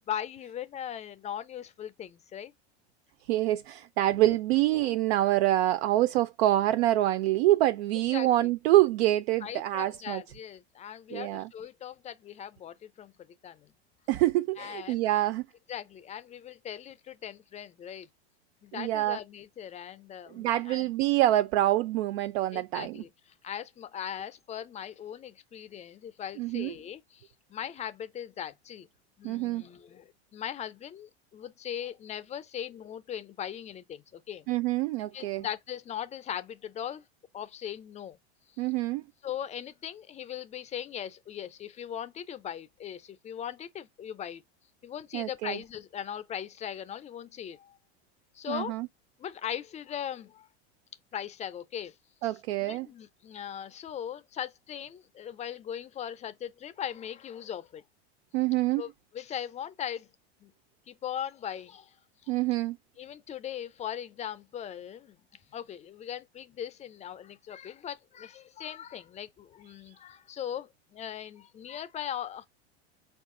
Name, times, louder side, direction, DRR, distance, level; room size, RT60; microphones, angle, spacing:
voice 1, 0.0-2.5 4.2-4.4 4.7-5.0 8.1-8.5 9.4-13.1 13.4-13.7 14.6-15.0 15.7-18.1 18.6-20.9 22.5-23.1 23.4-28.9 29.2-34.5 35.1-37.0 37.3-38.2 39.2-44.4 44.8-47.8 48.3-48.7 49.2-50.5 51.1-51.9 52.6-57.8 58.8-60.1 60.4-60.5 60.9-61.9 62.2-62.3 63.0-65.2 65.5-72.5, left 9 dB, 20° left, 0.4 m, -39 dB
voice 2, 3.3-10.2 11.1-11.5 14.1-15.4 18.7-19.2 20.3-23.0 26.4-26.7 29.2-29.7 34.5-35.5 38.6-39.0 45.1-45.6 48.5-48.9 52.2-52.9 58.3-58.8 62.3-62.8, right 15 dB, 75° right, 0.5 m, -26 dB
4.5 x 2.4 x 3.6 m
supercardioid pair, 120°, 33 cm